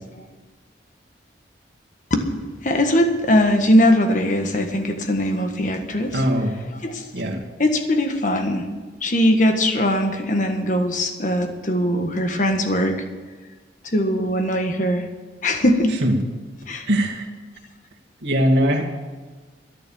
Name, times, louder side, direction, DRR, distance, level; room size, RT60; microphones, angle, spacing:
voice 1, 2.6-7.1 7.6-8.7 9.0-13.0 13.9-15.0 15.4-16.0 16.7-16.9, left 1 dB, 45° left, 5 dB, 1.5 m, -20 dB
voice 2, 6.1-6.6 7.1-7.4 16.0-16.1 16.9-17.2 18.2-18.8, equal, 85° right, -1 dB, 2.1 m, -20 dB
13.5 x 10.5 x 7.1 m, 1.4 s
head